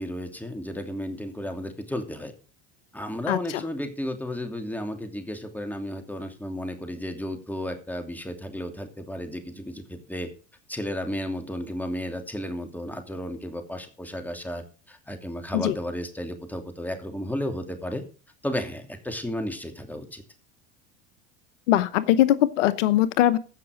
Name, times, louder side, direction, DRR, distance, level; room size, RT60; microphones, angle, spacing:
voice 1, 0.0-2.3 2.9-10.3 10.7-18.0 18.4-20.2, left 1 dB, 5° left, 5 dB, 2.8 m, -33 dB
voice 2, 3.3-3.6 15.5-15.7 21.7-23.4, left 13 dB, 85° left, 15 dB, 0.9 m, -21 dB
15.5 x 5.9 x 6.5 m, 0.38 s
supercardioid pair, 90°, 36 cm